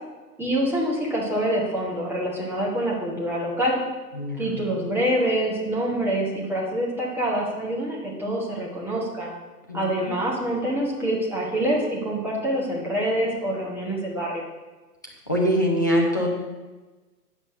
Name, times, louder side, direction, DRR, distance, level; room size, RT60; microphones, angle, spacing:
voice 1, 0.4-3.8 4.4-9.3 9.7-14.4, right 1 dB, 5° right, -4 dB, 1.2 m, -26 dB
voice 2, 4.1-4.6 8.2-8.3 9.7-10.1 15.3-16.3, equal, 15° left, -2 dB, 0.4 m, -24 dB
8.8 x 5.5 x 6.5 m, 1.2 s
figure-of-eight pair, 120°, 49 cm